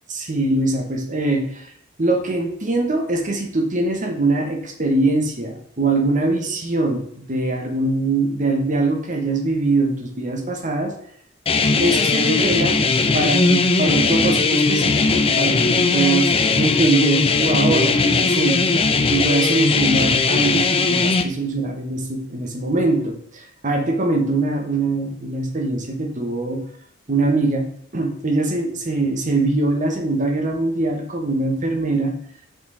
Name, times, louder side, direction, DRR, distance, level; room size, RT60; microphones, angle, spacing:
voice 1, 0.1-1.7 2.0-10.9 11.8-12.8 13.1-18.7 19.1-26.6 27.1-27.7 27.9-32.1, right 2 dB, 40° right, 4 dB, 1.0 m, -22 dB
sound 1, 11.5-21.2, left 4 dB, 25° left, 0.5 m, -18 dB
6.2 x 4.2 x 5.4 m, 0.68 s
head